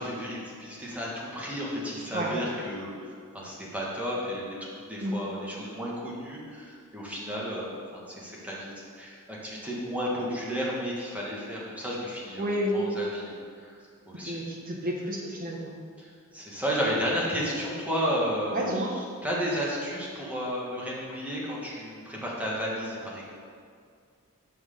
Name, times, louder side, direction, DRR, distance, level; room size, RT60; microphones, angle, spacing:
voice 1, 0.0-4.4 4.9-13.8 14.0-14.4 16.0-23.3, equal, 5° right, -6 dB, 1.6 m, -33 dB
voice 2, 12.4-12.8 14.3-15.8 18.5-18.9, equal, 40° right, -1 dB, 1.3 m, -30 dB
6.2 x 5.8 x 6.7 m, 2.2 s
head